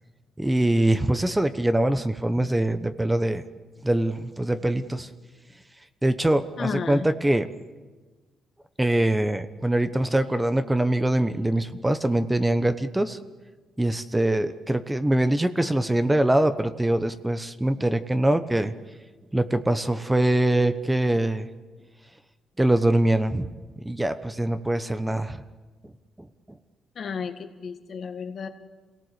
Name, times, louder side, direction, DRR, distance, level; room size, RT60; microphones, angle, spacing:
voice 1, 0.4-3.4 3.8-5.1 6.0-7.5 8.8-13.2 13.8-18.7 19.3-21.5 22.6-23.5 23.8-25.4, right 1 dB, 10° right, 10 dB, 1.0 m, -23 dB
voice 2, 6.6-7.1 27.0-28.5, left 6 dB, 50° left, 7 dB, 1.8 m, -32 dB
26.5 x 18.5 x 8.2 m, 1.3 s
cardioid pair, 90°, 0 cm